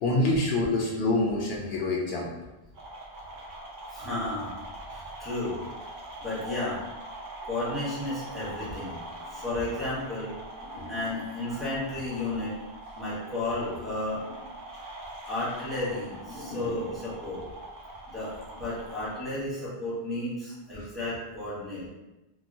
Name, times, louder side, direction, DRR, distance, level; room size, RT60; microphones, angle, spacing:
voice 1, 0.0-2.3 10.6-11.1 11.5-11.6 16.3-16.7 20.8-20.9, left 2 dB, 70° left, -3 dB, 0.8 m, -27 dB
sound 1, 2.7-19.2, right 1 dB, 55° right, 0.7 m, -43 dB
voice 2, 3.9-4.5 4.9-5.6 6.2-6.8 7.5-9.0 9.3-10.3 10.9-12.5 13.0-14.2 15.2-17.4 18.1-21.9, left 2 dB, ahead, -10 dB, 1.0 m, -33 dB
2.9 x 2.2 x 2.5 m, 1.0 s
omnidirectional pair, 1.1 m